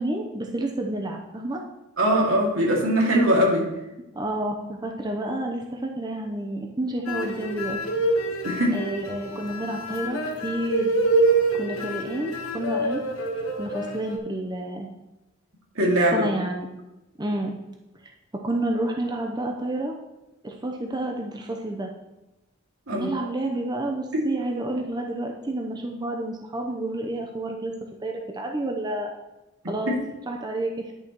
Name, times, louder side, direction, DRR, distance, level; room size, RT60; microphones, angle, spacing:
voice 1, 0.0-1.6 4.1-7.8 8.7-10.9 11.5-13.0 13.6-14.9 16.1-16.7 17.2-17.6 18.4-19.9 20.4-21.9 22.9-27.7 28.0-29.1 29.7-29.9 30.3-30.9, right 1 dB, 20° right, 1 dB, 0.7 m, -29 dB
voice 2, 2.0-3.7 8.4-8.8 15.8-16.3 22.9-23.1 24.1-24.2 29.9-30.0, equal, 80° right, -2 dB, 2.3 m, -21 dB
sound 1, 7.1-14.2, right 2 dB, 80° left, 1.3 m, -26 dB
10.5 x 6.9 x 3.0 m, 0.98 s
head